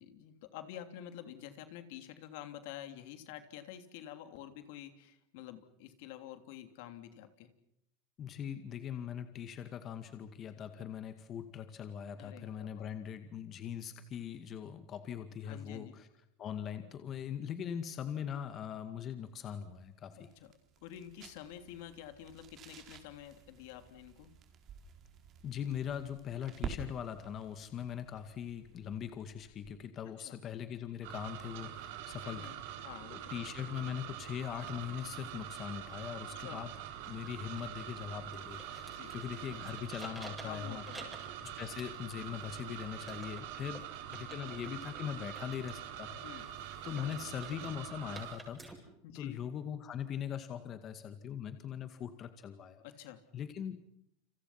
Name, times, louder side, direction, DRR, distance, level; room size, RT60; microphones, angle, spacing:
voice 1, 0.0-7.5 12.2-12.9 15.4-15.9 20.2-20.5 20.8-24.3 30.2-30.3 32.2-33.4 36.3-36.6 38.9-39.1 40.4-41.2 46.2-46.5 49.0-49.4 52.8-53.2, left 11 dB, 65° left, 9 dB, 3.2 m, -49 dB
voice 2, 8.2-16.1 16.4-20.3 25.4-32.8 33.1-36.7 37.0-40.8 41.4-46.4 46.8-48.6 49.1-52.8 53.3-53.8, left 9 dB, 35° left, 9 dB, 2.0 m, -41 dB
sound 1, 19.2-29.9, right 6 dB, 40° right, 4.4 m, -50 dB
sound 2, 31.0-48.4, right 11 dB, 70° right, 4.1 m, -45 dB
sound 3, 36.9-48.7, right 2 dB, 10° right, 7.6 m, -54 dB
29.5 x 27.0 x 5.9 m, 0.77 s
supercardioid pair, 125°, 0 cm